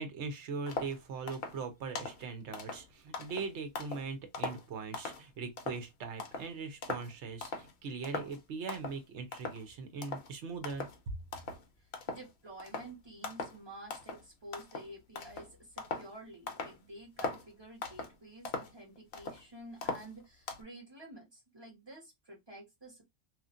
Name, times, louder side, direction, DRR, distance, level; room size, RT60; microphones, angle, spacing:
voice 1, 0.0-11.1, right 4 dB, 60° right, 1.0 m, -40 dB
sound 1, 0.7-1.0 1.3-1.6 2.0-2.2 2.5-4.1 4.3-5.2 5.6-5.9 6.2-6.5 6.8-7.1 7.4-7.7 8.0-8.4 8.7-9.0 9.3-9.7 10.0-10.3 10.6-11.0 11.3-11.7 11.9-12.3 12.6-12.9 13.2-13.6 13.9-14.3 14.5-16.1 16.5-16.8 17.2-17.5 17.8-18.2 18.5-19.4 19.8-20.6, left 4 dB, 55° left, 0.7 m, -40 dB
voice 2, 11.8-23.0, right 1 dB, 20° right, 1.3 m, -50 dB
3.0 x 2.4 x 2.5 m
omnidirectional pair, 1.5 m